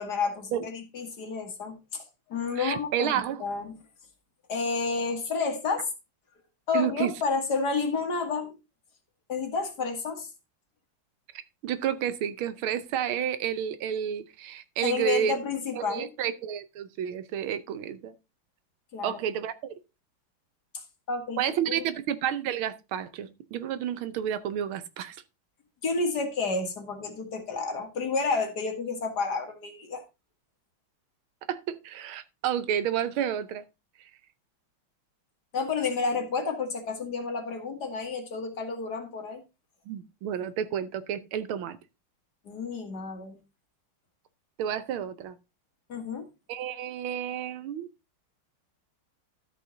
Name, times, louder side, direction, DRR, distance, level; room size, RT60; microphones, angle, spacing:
voice 1, 0.0-2.0 2.3-3.8 4.5-5.9 6.7-8.6 9.3-10.3 14.8-16.1 18.9-19.2 21.1-21.4 21.8-21.9 25.8-30.0 35.5-39.4 42.5-43.4 45.9-46.3, left 4 dB, 50° left, 2.2 m, -30 dB
voice 2, 2.6-3.4 6.7-7.1 11.6-15.3 15.7-18.1 19.0-19.7 21.4-25.2 31.5-33.6 39.9-41.8 44.6-45.4 46.5-47.9, right 9 dB, 80° right, 1.6 m, -30 dB
12.5 x 5.4 x 3.9 m
omnidirectional pair, 2.3 m